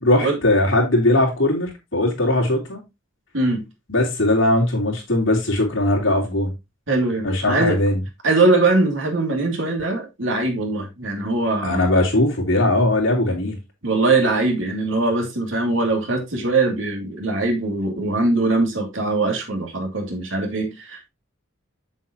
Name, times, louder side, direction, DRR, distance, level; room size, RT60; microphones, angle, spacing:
voice 1, 0.0-2.8 3.9-6.5 7.2-8.0 11.6-13.6, left 1 dB, 65° left, 3.3 m, -19 dB
voice 2, 3.3-3.6 6.9-7.8 8.2-11.8 13.8-21.1, right 3 dB, 70° right, 2.6 m, -21 dB
7.4 x 7.3 x 2.9 m
head